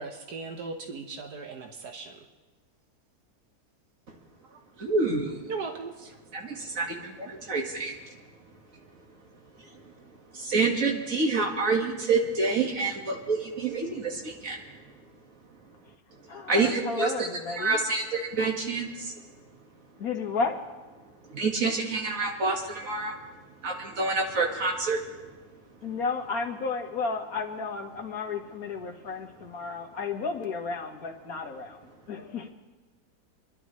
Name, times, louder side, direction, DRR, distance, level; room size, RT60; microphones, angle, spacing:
voice 1, 0.0-2.3 4.5-4.6 5.5-6.2, right 4 dB, 85° right, 3 dB, 1.6 m, -38 dB
voice 2, 4.8-5.4 6.3-7.9 10.3-14.6 16.5-19.1 21.3-23.1 23.6-25.0, right 3 dB, 60° right, 1 dB, 2.1 m, -27 dB
voice 3, 16.3-17.8 20.0-20.6 25.8-31.8 32.1-32.5, left 4 dB, 65° left, 3 dB, 1.8 m, -32 dB
26.5 x 11.5 x 3.1 m, 1.2 s
omnidirectional pair, 1.7 m